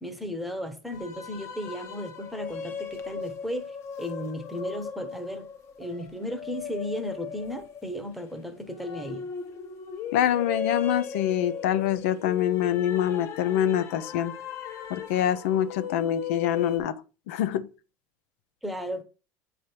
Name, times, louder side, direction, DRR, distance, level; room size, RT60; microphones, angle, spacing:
voice 1, 0.0-5.5 5.8-9.3 18.6-19.0, equal, ahead, 0.9 m, -35 dB
sound 1, 0.9-16.8, left 8 dB, 40° left, 0.9 m, -37 dB
voice 2, 10.1-14.3 14.9-17.0 17.3-17.7, left 10 dB, 85° left, 0.6 m, -25 dB
8.4 x 3.4 x 4.4 m
cardioid pair, 145°, 7 cm